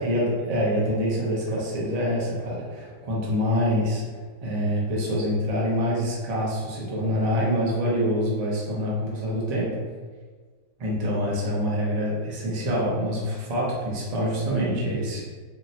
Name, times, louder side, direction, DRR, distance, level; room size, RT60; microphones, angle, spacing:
voice 1, 0.0-4.0 4.4-9.7 10.8-15.2, equal, 50° right, -5 dB, 0.4 m, -25 dB
3.7 x 2.1 x 2.7 m, 1.5 s
omnidirectional pair, 1.7 m